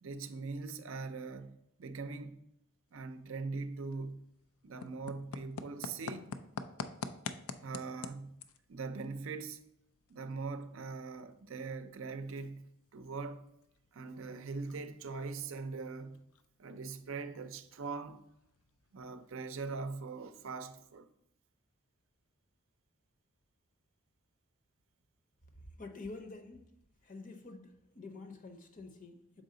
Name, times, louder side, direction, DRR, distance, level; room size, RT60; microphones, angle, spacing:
voice 1, 0.0-2.4 2.9-4.2 4.6-6.4 7.6-8.4 8.7-9.6 10.1-13.5 13.9-16.2 16.6-18.2 18.9-21.1, right 4 dB, 65° right, 0.5 m, -41 dB
sound 1, 2.9-21.0, left 5 dB, 90° left, 0.4 m, -50 dB
voice 2, 25.5-26.7 27.0-29.4, left 3 dB, 40° left, 0.7 m, -48 dB
6.3 x 4.7 x 3.8 m
head